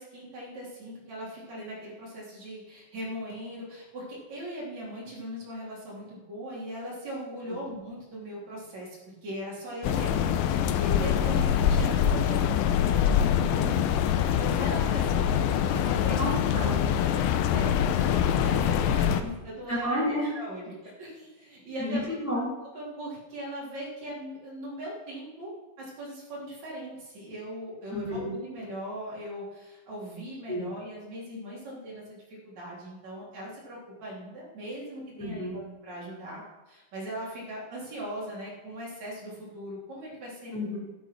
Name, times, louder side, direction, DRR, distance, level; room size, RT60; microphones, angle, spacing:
voice 1, 0.0-16.2 16.6-17.2 17.5-17.8 18.2-19.9 20.3-22.0 22.7-40.5, equal, 40° right, -6 dB, 4.5 m, -39 dB
sound 1, 9.8-19.2, left 9 dB, 85° left, 2.9 m, -24 dB
voice 2, 11.0-11.4 16.1-16.8 19.7-20.3 21.8-22.5 27.9-28.3 30.5-30.7 35.2-35.6 40.5-40.8, left 1 dB, 5° left, -8 dB, 4.4 m, -31 dB
12.5 x 12.0 x 4.7 m, 1.1 s
omnidirectional pair, 5.4 m